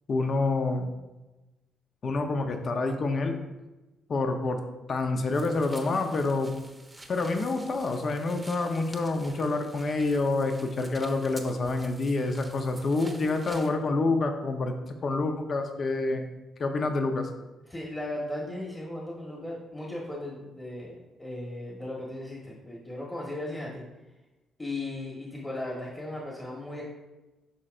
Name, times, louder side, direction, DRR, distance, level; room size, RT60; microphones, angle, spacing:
voice 1, 0.1-0.9 2.0-3.4 4.1-4.6 4.9-6.5 7.1-14.8 15.0-16.3 16.6-17.3, left 3 dB, 45° left, 5 dB, 0.8 m, -27 dB
sound 1, 5.3-13.7, right 1 dB, 15° right, 0.9 m, -49 dB
voice 2, 17.7-23.8 24.6-26.8, left 1 dB, 15° left, -3 dB, 1.4 m, -37 dB
11.5 x 4.3 x 2.6 m, 1.1 s
cardioid pair, 90°, 0 cm